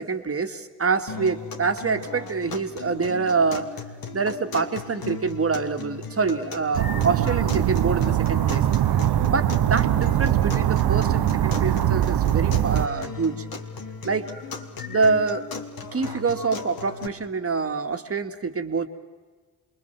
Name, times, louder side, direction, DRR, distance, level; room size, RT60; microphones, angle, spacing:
voice 1, 0.0-3.7 4.1-8.7 9.3-13.5 14.0-14.3 14.9-15.4 15.9-18.9, right 4 dB, 30° right, 7 dB, 2.2 m, -26 dB
sound 1, 1.1-17.1, left 4 dB, 55° left, 2.6 m, -36 dB
sound 2, 6.7-12.9, right 12 dB, 60° right, 0.9 m, -22 dB
27.0 x 22.0 x 7.4 m, 1.4 s
hypercardioid pair, 50°, 42 cm